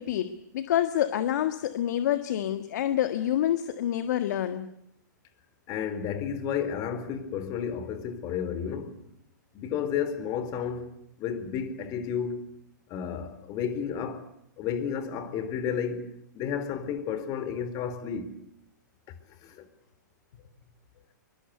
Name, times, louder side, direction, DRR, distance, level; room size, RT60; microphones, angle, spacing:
voice 1, 0.0-4.7, left 11 dB, 60° left, 1.8 m, -27 dB
voice 2, 5.7-9.0 9.5-12.5 12.9-14.3 14.6-18.3 19.4-19.7, left 7 dB, 35° left, 4.2 m, -32 dB
23.5 x 22.5 x 8.2 m
hypercardioid pair, 125°, 10 cm